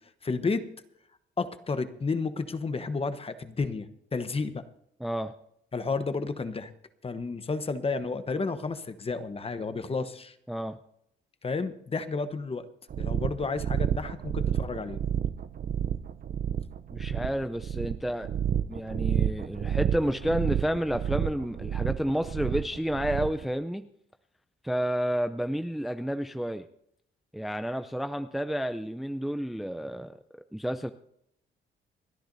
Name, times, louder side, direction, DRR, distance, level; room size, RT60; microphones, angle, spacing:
voice 1, 0.2-0.6 1.4-4.6 5.7-6.7 7.0-10.3 11.4-12.7 13.0-15.0, left 4 dB, 30° left, 10 dB, 1.0 m, -31 dB
voice 2, 5.0-5.3 10.5-10.8 16.9-18.3 18.7-23.9 24.6-26.7 27.3-30.2 30.5-30.9, equal, ahead, 9 dB, 0.5 m, -30 dB
sound 1, 12.9-23.5, right 9 dB, 45° right, 0.6 m, -30 dB
30.0 x 10.0 x 2.7 m, 0.73 s
cardioid pair, 90°, 20 cm